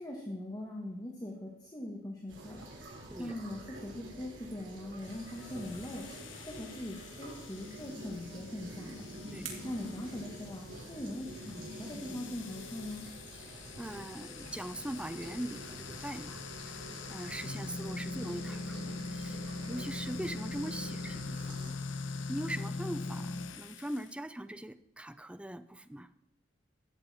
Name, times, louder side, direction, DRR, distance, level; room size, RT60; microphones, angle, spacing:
voice 1, 0.0-2.6 2.9-6.1 6.4-8.9 9.3-13.1, left 1 dB, 20° left, -1 dB, 1.3 m, -41 dB
sound 1, 2.3-21.7, right 1 dB, 65° right, 3.1 m, -48 dB
sound 2, 5.0-24.1, left 3 dB, 70° left, 0.8 m, -42 dB
sound 3, 8.4-11.1, right 7 dB, 90° right, 2.6 m, -51 dB
voice 2, 9.3-9.6 13.3-21.7 22.3-26.1, right 1 dB, 5° right, 12 dB, 0.4 m, -41 dB
13.5 x 8.1 x 4.2 m, 0.87 s
head